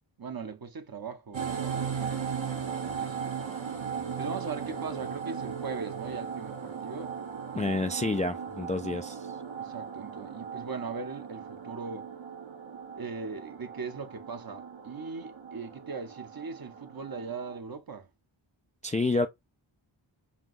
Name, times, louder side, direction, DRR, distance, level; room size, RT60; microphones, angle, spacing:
voice 1, 0.2-2.3 2.8-3.2 4.2-7.1 7.5-7.9 9.6-12.1 12.9-18.1, right 4 dB, 50° right, 0.8 m, -39 dB
sound 1, 1.3-17.6, right 7 dB, 75° right, 1.1 m, -37 dB
voice 2, 7.5-9.3 18.8-19.3, left 2 dB, 15° left, 0.3 m, -29 dB
5.7 x 2.3 x 2.5 m
wide cardioid pair, 55°, 48 cm